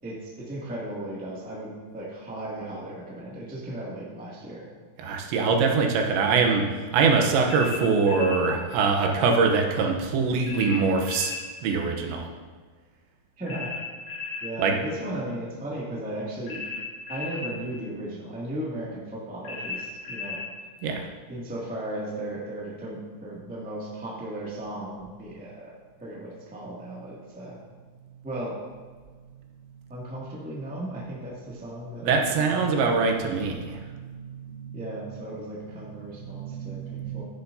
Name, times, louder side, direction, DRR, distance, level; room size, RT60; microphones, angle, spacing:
voice 1, 0.0-4.7 13.4-13.7 14.4-16.6 17.1-20.4 21.3-25.7 26.0-27.6 28.2-28.6 29.9-33.0 34.7-37.2, right 1 dB, 5° right, -6 dB, 0.7 m, -36 dB
voice 2, 5.0-6.6 6.9-11.3 11.6-12.2 14.6-14.8 20.8-21.0 32.0-34.8 36.3-37.2, right 4 dB, 85° right, 1 dB, 3.3 m, -23 dB
sound 1, 7.5-8.5 10.5-11.4 13.5-14.5 16.5-17.5 19.4-20.5, left 5 dB, 60° left, 3.9 m, -35 dB
12.0 x 10.5 x 2.8 m, 1.5 s
omnidirectional pair, 5.0 m